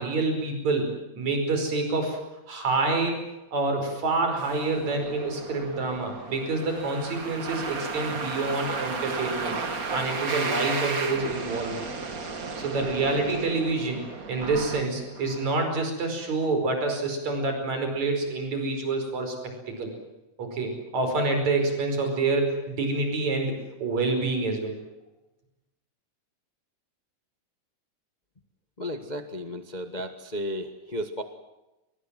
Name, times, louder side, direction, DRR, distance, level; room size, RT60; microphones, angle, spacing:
voice 1, 0.0-2.2 2.5-3.2 3.5-9.5 9.9-11.8 12.6-14.0 14.3-19.3 19.7-19.9 20.4-24.8, right 3 dB, 65° right, 5 dB, 6.4 m, -27 dB
sound 1, 4.4-15.5, right 4 dB, 30° right, 2.1 m, -34 dB
voice 2, 28.8-31.2, equal, 30° left, 7 dB, 0.8 m, -34 dB
24.0 x 22.5 x 7.6 m, 1.0 s
omnidirectional pair, 3.5 m